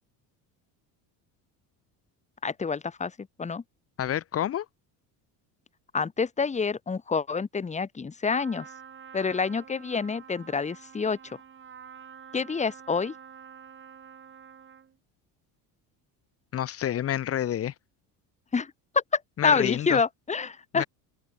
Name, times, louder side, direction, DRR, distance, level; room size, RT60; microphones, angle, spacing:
voice 1, 2.4-3.1 3.4-3.6 5.9-8.7 9.1-11.2 12.3-13.1 18.5-20.9, left 5 dB, 15° left, 2.3 m, -27 dB
voice 2, 4.0-4.7 16.5-17.7 19.4-20.0 20.7-20.8, left 11 dB, 35° left, 1.4 m, -28 dB
Trumpet, 8.3-15.0, right 7 dB, 30° right, 4.9 m, -48 dB
cardioid pair, 150°, 41 cm